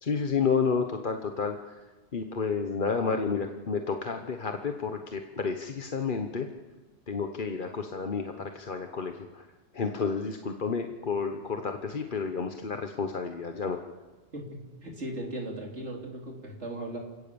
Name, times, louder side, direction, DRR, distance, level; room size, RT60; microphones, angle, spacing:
voice 1, 0.0-1.8 2.1-6.5 7.1-9.5 9.7-13.8, left 5 dB, 50° left, 5 dB, 1.2 m, -30 dB
voice 2, 14.3-17.0, right 1 dB, 85° right, 0 dB, 3.7 m, -38 dB
28.0 x 17.5 x 7.1 m, 1.3 s
omnidirectional pair, 1.2 m